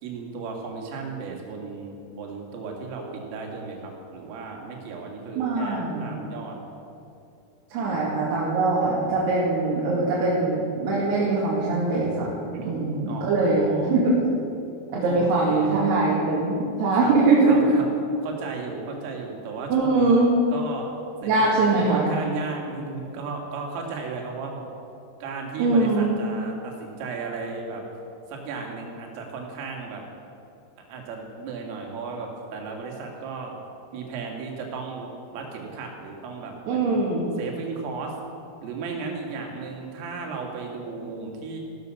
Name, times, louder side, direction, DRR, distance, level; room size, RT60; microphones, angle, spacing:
voice 1, 0.0-6.6 7.8-8.0 12.5-12.7 13.1-14.0 15.0-15.7 16.9-17.2 17.4-17.9 18.2-20.2 20.5-20.9 21.2-21.3 21.7-24.6 25.2-27.8 28.3-30.0 30.8-33.5 33.9-37.0 37.4-38.2 38.6-41.6, right 4 dB, 75° right, 0 dB, 4.7 m, -35 dB
voice 2, 5.4-6.2 7.7-12.3 12.7-14.2 14.9-17.6 19.7-20.3 21.2-22.1 25.6-26.2 36.7-37.3, right 3 dB, 60° right, -6 dB, 3.9 m, -22 dB
15.5 x 12.5 x 6.5 m, 2.7 s
omnidirectional pair, 6.0 m